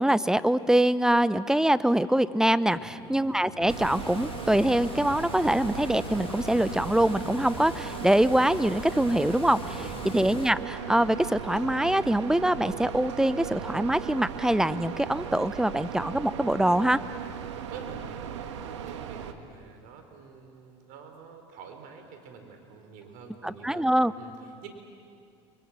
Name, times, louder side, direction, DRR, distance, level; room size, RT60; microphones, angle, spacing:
voice 1, 0.0-9.8 10.1-17.0 23.4-24.1, right 1 dB, 5° right, 15 dB, 0.9 m, -24 dB
sound 1, 2.7-7.7, right 1 dB, 35° right, 7.5 m, -47 dB
sound 2, 3.6-19.3, right 8 dB, 85° right, 1.6 m, -38 dB
Water, 3.7-10.5, left 7 dB, 40° left, 1.5 m, -42 dB
voice 2, 9.7-10.1 17.7-23.9 24.2-24.7, right 5 dB, 65° right, 5 dB, 4.6 m, -47 dB
29.5 x 23.5 x 7.6 m, 2.4 s
hypercardioid pair, 85°, 15 cm